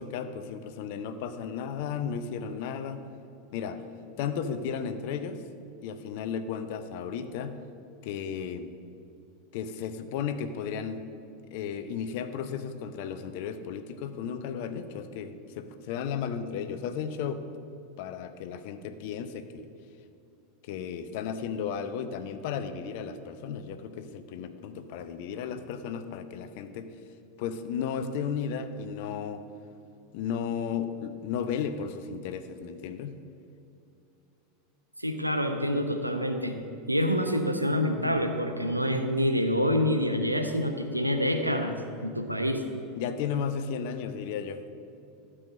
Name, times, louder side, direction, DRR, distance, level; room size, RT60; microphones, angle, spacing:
voice 1, 0.0-3.1 3.5-3.8 4.2-5.4 5.8-7.5 8.0-8.7 9.5-11.1 11.5-17.5 18.0-19.7 20.6-26.9 27.4-29.4 30.1-33.1 43.0-44.6, left 7 dB, 50° left, 10 dB, 0.6 m, -34 dB
voice 2, 35.0-36.5 36.9-41.8 42.0-42.6, equal, 90° right, 5 dB, 0.8 m, -27 dB
12.0 x 4.9 x 6.3 m, 2.7 s
figure-of-eight pair, 85°, 0 cm